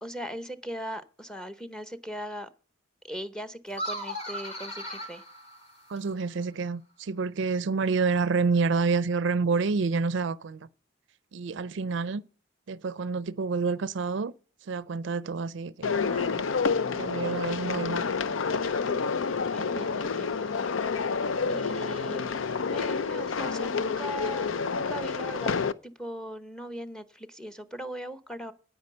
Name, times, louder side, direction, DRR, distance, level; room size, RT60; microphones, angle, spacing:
voice 1, 0.0-2.5 3.0-5.2 19.5-21.1 21.5-22.3 22.7-25.5 25.8-28.5, equal, 5° left, 0.8 m, -39 dB
sound 1, 3.7-6.2, equal, 30° left, 2.9 m, -37 dB
voice 2, 5.9-10.6 11.3-12.2 12.7-14.3 14.7-16.4 16.9-18.0, right 4 dB, 65° right, 0.5 m, -28 dB
sound 2, 15.8-25.7, left 5 dB, 85° left, 0.6 m, -29 dB
9.5 x 9.1 x 6.7 m
head